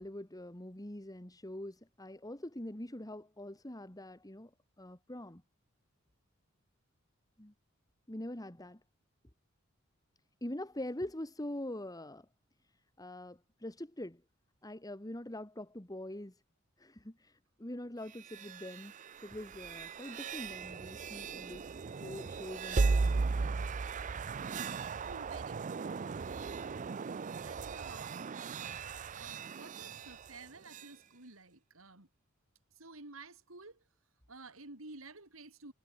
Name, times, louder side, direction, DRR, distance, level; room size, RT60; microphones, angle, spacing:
voice 1, 0.0-4.5 4.8-5.4 7.4-7.5 8.1-8.8 10.4-12.3 13.0-14.2 14.6-16.4 16.8-18.9 19.2-21.6 22.0-23.3, left 1 dB, 20° left, 2.2 m, -44 dB
sound 1, 18.1-30.9, right 4 dB, 40° right, 0.5 m, -37 dB
voice 2, 25.0-25.9 27.4-28.2 29.1-32.1 32.7-33.8 34.3-35.7, right 3 dB, 90° right, 4.2 m, -52 dB
head